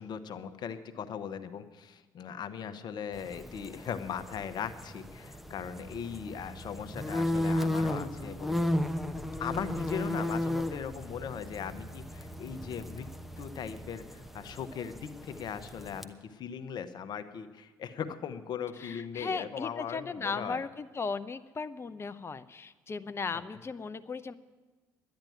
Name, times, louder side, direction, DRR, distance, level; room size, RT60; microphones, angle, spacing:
voice 1, 0.0-8.6 9.4-13.1 13.4-20.6, left 8 dB, 50° left, 11 dB, 1.0 m, -39 dB
sound 1, 3.1-16.0, left 1 dB, ahead, 1.0 m, -35 dB
voice 2, 18.8-24.3, left 4 dB, 30° left, 12 dB, 0.7 m, -37 dB
10.5 x 10.5 x 9.2 m, 1.3 s
hypercardioid pair, 55°, 9 cm